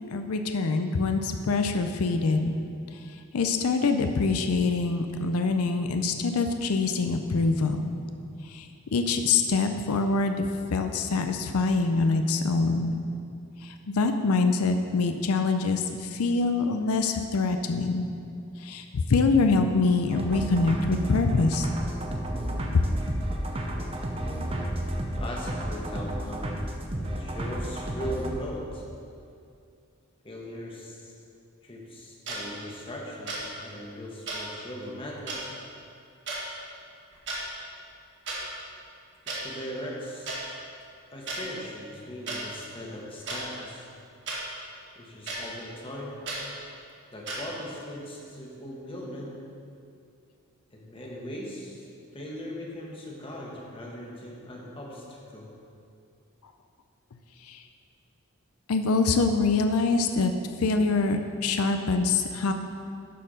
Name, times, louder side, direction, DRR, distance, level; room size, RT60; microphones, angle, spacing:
voice 1, 0.0-2.5 3.3-7.9 8.5-8.7 8.9-12.9 13.6-18.1 18.6-21.7 22.7-22.8 57.5-57.6 58.7-60.3 60.6-62.5, left 3 dB, 85° left, 6 dB, 0.5 m, -25 dB
sound 1, 20.1-28.3, right 1 dB, 25° right, 0.7 m, -32 dB
voice 2, 25.1-26.6 26.9-28.8 30.2-31.1 31.6-35.5 39.2-40.3 41.1-43.9 44.9-46.2 47.1-49.4 50.7-51.8 52.1-55.5, equal, 25° left, -2 dB, 1.2 m, -39 dB
sound 2, 32.3-32.4 33.3-33.4 34.3-34.4 35.3-35.4 36.3-36.4 37.1-37.4 38.3-38.4 39.3-39.4 40.3-40.4 41.3-41.4 42.3-42.4 43.3-43.4 44.3-44.4 45.3-45.4 46.3-46.4 47.3-47.4, right 3 dB, 55° right, 2.0 m, -33 dB
12.0 x 4.5 x 5.0 m, 2.5 s
head